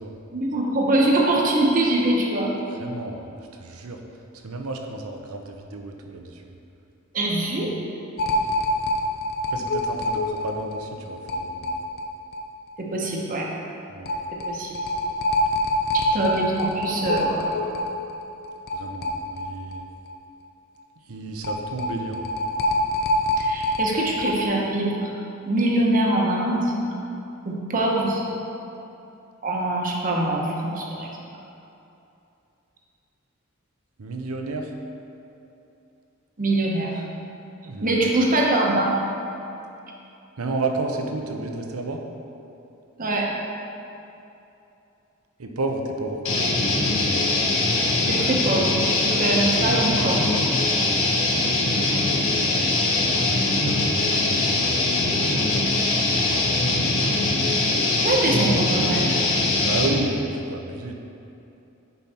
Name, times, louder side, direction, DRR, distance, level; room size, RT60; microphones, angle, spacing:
voice 1, 0.3-2.5 7.1-7.7 12.8-13.5 14.5-14.8 15.9-17.7 23.4-25.1 25.5-26.7 27.4-28.2 29.4-31.1 36.4-37.0 37.8-38.9 43.0-43.3 48.0-50.2 58.0-59.2 59.4-59.5, right 1 dB, 40° right, -2 dB, 1.1 m, -23 dB
voice 2, 2.8-3.3 3.6-4.0 4.4-6.6 9.5-11.7 13.9-14.1 18.7-19.9 21.1-22.3 34.0-34.7 37.6-38.1 40.4-42.0 45.4-46.5 53.2-54.6 55.2-55.6 59.6-61.0, right 2 dB, 85° right, 3 dB, 0.8 m, -31 dB
sound 1, 8.2-12.4 12.7-12.8 13.1-13.2 14.1-19.8 20.1-20.2 21.4-24.4, left 1 dB, 45° left, 0.6 m, -25 dB
sound 2, 46.2-60.0, left 2 dB, 65° left, 1.2 m, -22 dB
8.1 x 5.5 x 4.3 m, 2.8 s
head